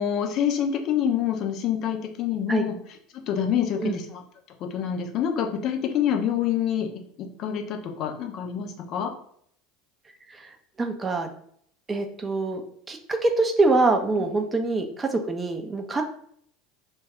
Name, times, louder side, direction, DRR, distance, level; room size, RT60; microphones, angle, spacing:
voice 1, 0.0-2.8 3.1-4.2 4.7-6.9 7.2-9.1, left 9 dB, 45° left, 4 dB, 0.5 m, -26 dB
voice 2, 10.8-11.3 11.9-12.6 12.9-16.0, right 3 dB, 20° right, 5 dB, 0.5 m, -24 dB
2.3 x 2.2 x 3.4 m, 0.64 s
figure-of-eight pair, 75°, 0 cm